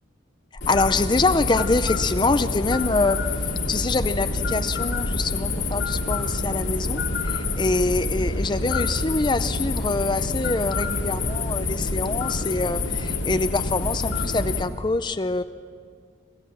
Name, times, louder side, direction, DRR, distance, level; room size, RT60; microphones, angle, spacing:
sound 1, 0.6-14.6, left 3 dB, 70° left, 2.3 m, -27 dB
voice 1, 0.7-3.2 3.7-7.0 7.3-15.4, left 3 dB, 25° left, 11 dB, 0.5 m, -25 dB
27.0 x 16.0 x 7.2 m, 2.1 s
head